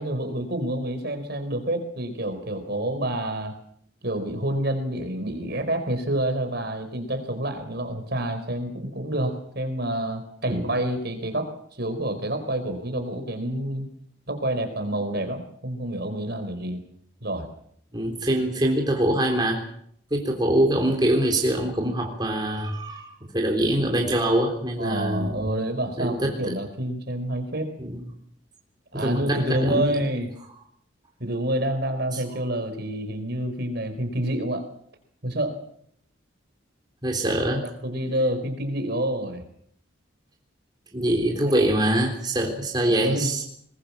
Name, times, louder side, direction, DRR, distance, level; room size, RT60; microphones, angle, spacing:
voice 1, 0.0-3.6 4.0-13.9 14.3-16.8 17.2-17.5 18.4-18.5 24.8-27.7 28.9-30.3 31.2-34.7 35.2-35.6 37.2-39.4 41.5-41.7 42.8-43.4, right 1 dB, 55° right, 8 dB, 4.5 m, -28 dB
voice 2, 17.9-19.6 20.1-25.5 26.0-26.5 27.8-28.1 28.9-29.9 32.1-32.2 37.0-37.6 40.9-43.4, right 1 dB, 20° right, 2 dB, 3.7 m, -24 dB
22.0 x 21.0 x 7.3 m, 0.66 s
head